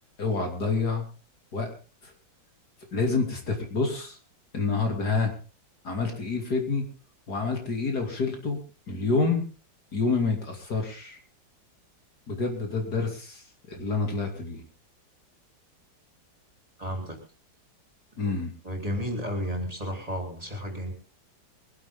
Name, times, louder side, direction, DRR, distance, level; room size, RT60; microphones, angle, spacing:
voice 1, 0.2-1.0 1.5-1.7 2.0-2.1 2.9-4.2 4.5-5.3 5.8-6.8 7.3-8.6 8.9-9.4 9.9-11.2 12.3-14.6 18.2-18.5, left 4 dB, 60° left, 3 dB, 3.3 m, -28 dB
voice 2, 16.8-17.2 18.2-18.3 18.6-20.9, equal, 20° right, 2 dB, 4.0 m, -32 dB
23.0 x 11.5 x 3.8 m, 0.34 s
omnidirectional pair, 2.0 m